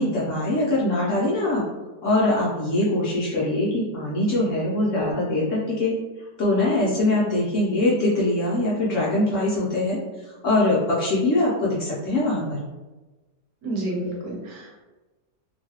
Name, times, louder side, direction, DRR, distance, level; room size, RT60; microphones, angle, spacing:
voice 1, 0.0-1.6 2.0-5.9 6.4-12.6, left 2 dB, 65° left, -6 dB, 0.8 m, -23 dB
voice 2, 13.6-14.8, right 1 dB, 70° right, -4 dB, 1.3 m, -30 dB
3.1 x 2.2 x 2.7 m, 1.2 s
omnidirectional pair, 1.7 m